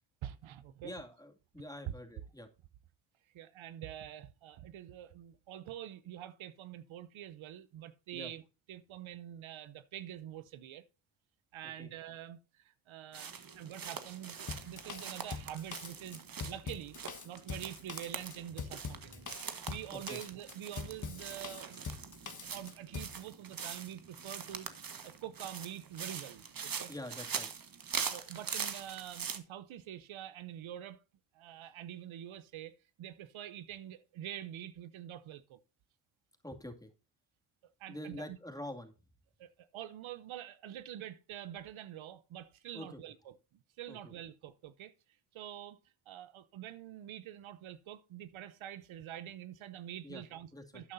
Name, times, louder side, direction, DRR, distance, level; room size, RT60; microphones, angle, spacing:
voice 1, 0.2-0.9 3.3-8.4 8.7-10.8 11.5-17.0 17.2-21.8 22.5-24.7 25.0-26.9 28.1-31.0 31.3-35.6 37.8-38.4 39.4-43.3 43.8-44.9 45.3-45.8 46.1-50.9, right 11 dB, 70° right, 0.8 m, -46 dB
voice 2, 0.8-2.5 8.1-8.3 11.8-11.9 19.1-19.3 19.9-20.2 26.9-27.5 36.4-36.9 37.9-38.9 42.7-43.0 43.9-44.1 50.0-50.2 50.5-50.8, left 1 dB, 5° left, 2.2 m, -46 dB
sound 1, 13.1-29.4, right 6 dB, 45° right, 1.4 m, -43 dB
Drum kit, 14.5-23.2, left 5 dB, 40° left, 1.4 m, -43 dB
12.5 x 8.9 x 2.6 m
supercardioid pair, 55°, 49 cm